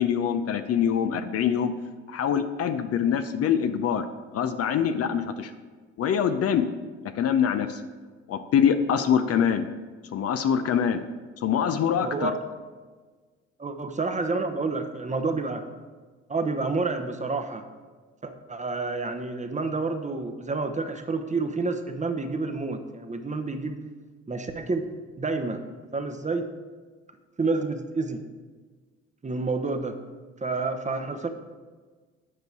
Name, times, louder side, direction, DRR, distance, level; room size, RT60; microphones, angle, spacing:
voice 1, 0.0-1.7 2.1-4.1 4.3-5.5 6.0-6.7 7.0-7.8 8.3-9.7 10.1-11.0 11.4-12.3, left 8 dB, 50° left, 9 dB, 0.6 m, -24 dB
voice 2, 12.0-12.4 13.6-15.7 16.3-17.6 18.2-23.8 24.3-24.9 25.2-25.6 25.9-26.5 27.4-28.2 29.2-30.0 30.4-31.3, right 3 dB, 20° right, 7 dB, 0.9 m, -29 dB
9.5 x 5.3 x 4.6 m, 1.4 s
hypercardioid pair, 55°, 32 cm